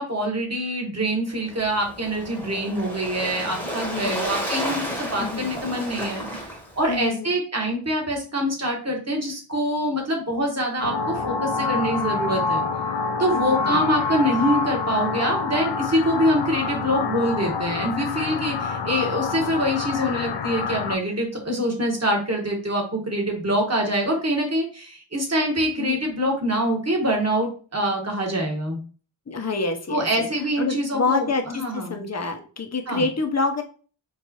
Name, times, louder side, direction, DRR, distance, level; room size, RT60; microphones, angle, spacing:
voice 1, 0.0-6.5 6.8-12.6 13.2-28.8 29.9-32.0 32.9-33.0, equal, 35° right, 0 dB, 1.3 m, -25 dB
Waves surf, 1.4-7.1, equal, 5° left, 1.1 m, -32 dB
voice 2, 3.8-4.2 5.2-5.5 6.9-7.3 13.3-13.8 25.8-26.0 29.3-30.3 30.6-33.6, left 3 dB, 35° left, 5 dB, 0.7 m, -27 dB
sound 1, 10.8-20.9, left 4 dB, 75° left, 0.5 m, -27 dB
4.6 x 2.5 x 2.9 m, 0.38 s
wide cardioid pair, 80°, 44 cm